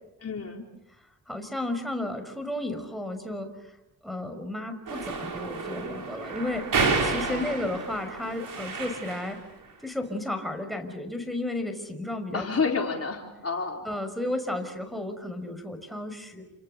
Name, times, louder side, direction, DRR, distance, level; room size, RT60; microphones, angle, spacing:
voice 1, 0.2-0.7 7.2-7.5 12.3-13.8, left 4 dB, 40° left, 1 dB, 4.2 m, -30 dB
voice 2, 1.3-3.7 4.0-6.7 7.0-9.4 9.8-12.4 12.8-12.9 13.8-16.4, left 1 dB, ahead, 5 dB, 5.9 m, -33 dB
sound 1, 4.9-9.4, right 4 dB, 60° right, 6.7 m, -30 dB
29.5 x 27.0 x 6.9 m, 0.93 s
cardioid pair, 65°, 37 cm